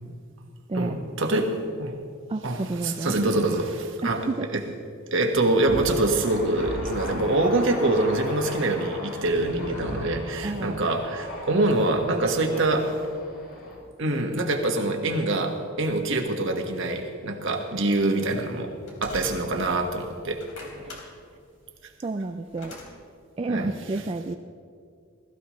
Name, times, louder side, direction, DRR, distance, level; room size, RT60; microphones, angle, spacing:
voice 1, 0.7-1.9 2.4-4.2 4.5-4.6 5.1-13.0 14.0-18.7 19.0-20.4 23.5-23.7, right 2 dB, 60° right, 3 dB, 1.5 m, -25 dB
voice 2, 2.3-3.1 4.0-4.5 10.4-10.8 20.8-21.0 22.0-22.8 23.4-24.4, right 2 dB, 25° right, 5 dB, 0.4 m, -30 dB
Thunder, 5.6-13.8, left 1 dB, 65° left, 3.6 m, -37 dB
sound 1, 18.1-19.8 20.2-22.9, left 2 dB, 85° left, 3.2 m, -42 dB
20.5 x 14.5 x 3.2 m, 2.2 s
head